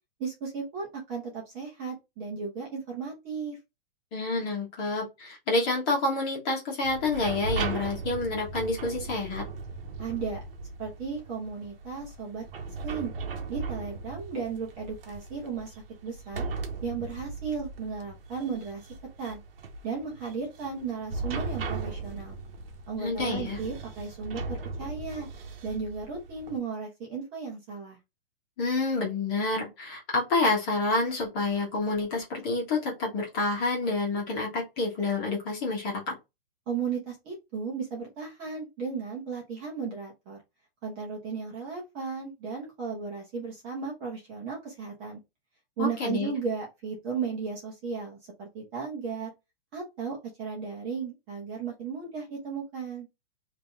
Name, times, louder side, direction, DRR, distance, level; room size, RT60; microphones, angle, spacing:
voice 1, 0.2-3.6 10.0-10.4 10.8-12.4 12.8-13.1 13.5-15.7 16.0-16.5 16.8-18.8 19.2-19.4 19.8-22.3 22.9-25.3 25.6-28.0 36.7-40.4 40.8-45.2 45.8-49.3 49.7-53.1, right 5 dB, 20° right, -2 dB, 1.2 m, -35 dB
voice 2, 4.1-9.5 23.0-23.6 28.6-36.1 45.8-46.3, left 3 dB, 25° left, -2 dB, 1.4 m, -28 dB
sound 1, 6.8-26.6, right 4 dB, 70° right, 1.1 m, -38 dB
3.8 x 2.9 x 3.5 m, 0.22 s
hypercardioid pair, 180°, 30 cm